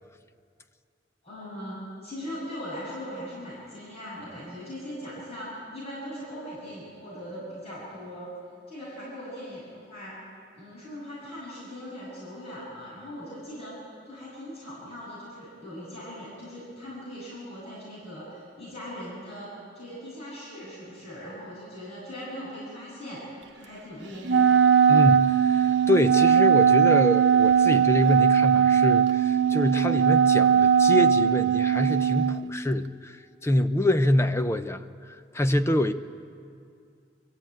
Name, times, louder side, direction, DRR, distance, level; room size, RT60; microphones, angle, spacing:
voice 1, 1.2-1.8 2.0-5.5 5.7-8.3 8.7-10.1 10.6-13.7 14.0-19.5 19.7-23.2 23.5-24.6, equal, 35° left, -8 dB, 7.7 m, -40 dB
Wind instrument woodwind instrument, 24.2-32.4, right 7 dB, 80° right, 0.9 m, -20 dB
voice 2, 24.9-35.9, left 1 dB, 15° left, 9 dB, 0.6 m, -26 dB
23.5 x 15.0 x 9.0 m, 2.4 s
head